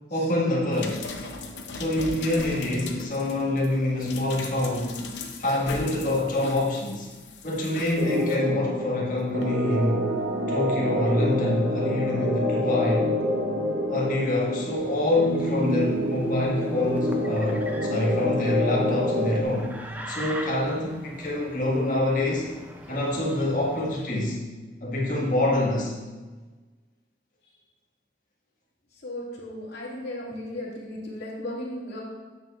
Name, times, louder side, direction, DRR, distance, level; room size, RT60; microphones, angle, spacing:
voice 1, 0.1-1.1 1.7-5.0 5.4-7.1 7.4-10.0 10.5-13.1 13.9-19.7 20.1-22.5 22.9-24.4 24.8-26.0, left 1 dB, 45° left, -4 dB, 1.8 m, -26 dB
sound 1, 0.7-8.4 9.4-9.5, left 3 dB, 85° left, 0.8 m, -39 dB
sound 2, 8.0-19.4, left 1 dB, 75° right, 1.3 m, -27 dB
sound 3, 14.6-24.3, right 1 dB, 10° right, 0.5 m, -43 dB
voice 2, 28.9-32.0, left 1 dB, 70° left, -5 dB, 2.3 m, -36 dB
9.2 x 7.5 x 2.5 m, 1.3 s
head